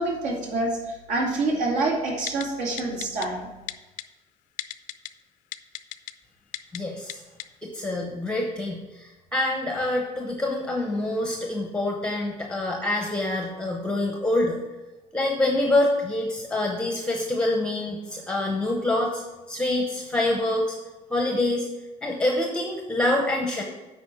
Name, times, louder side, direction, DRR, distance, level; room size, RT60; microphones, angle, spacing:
voice 1, 0.0-3.5, right 2 dB, 65° right, 0 dB, 2.3 m, -27 dB
Typing, 2.3-2.4 2.8-3.3 3.7-4.0 4.6-5.1 5.5-6.1 6.5-6.8 7.1-7.2 7.4-7.5, left 17 dB, 85° left, 0.5 m, -33 dB
voice 2, 6.7-7.2 7.6-14.6 15.1-19.2 19.5-20.8 21.1-21.7 22.0-23.6, left 1 dB, 5° left, 1 dB, 0.8 m, -26 dB
8.5 x 5.2 x 6.1 m, 1.1 s
cardioid pair, 170°, 13 cm